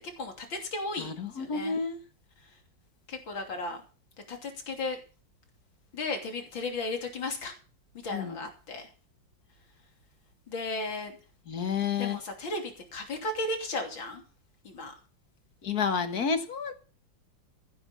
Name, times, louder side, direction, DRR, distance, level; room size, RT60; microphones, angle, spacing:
voice 1, 0.2-1.8 2.4-2.6 3.1-3.8 4.3-5.0 5.9-7.6 8.0-8.9 10.5-11.1 12.0-14.2 14.6-14.9, left 2 dB, 85° left, 4 dB, 3.7 m, -35 dB
voice 2, 1.0-2.0 8.1-8.4 11.5-12.2 15.6-16.7, left 6 dB, 55° left, 9 dB, 1.9 m, -30 dB
15.0 x 9.9 x 5.6 m, 0.36 s
omnidirectional pair, 2.1 m